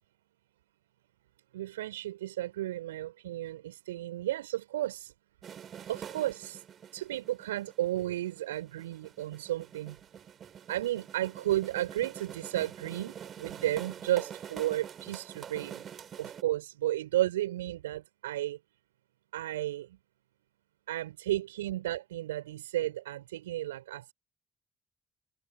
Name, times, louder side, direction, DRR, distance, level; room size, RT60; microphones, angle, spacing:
voice 1, 1.5-5.1 5.9-6.6 6.9-10.0 10.7-15.8 16.2-18.6 19.3-20.0 20.9-24.1, right 14 dB, 80° right, 6.1 m, -33 dB
sound 1, 5.4-16.4, right 8 dB, 50° right, 4.8 m, -46 dB
figure-of-eight pair, 40°, 0 cm